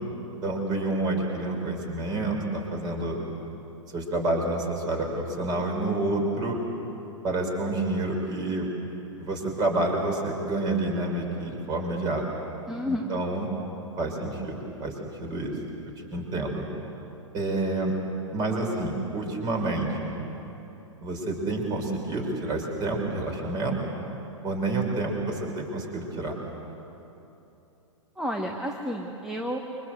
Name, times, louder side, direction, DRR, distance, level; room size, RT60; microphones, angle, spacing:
voice 1, 0.4-3.2 3.9-6.6 7.2-8.7 9.2-12.2 12.8-13.5 14.0-14.9 15.2-15.5 16.1-16.6 17.3-17.9 18.3-20.1 21.0-23.8 24.4-26.3, right 2 dB, 25° right, 2 dB, 5.9 m, -28 dB
voice 2, 12.7-13.1 28.2-29.6, equal, 5° right, 0 dB, 1.6 m, -31 dB
28.5 x 24.5 x 8.1 m, 3.0 s
figure-of-eight pair, 110°, 17 cm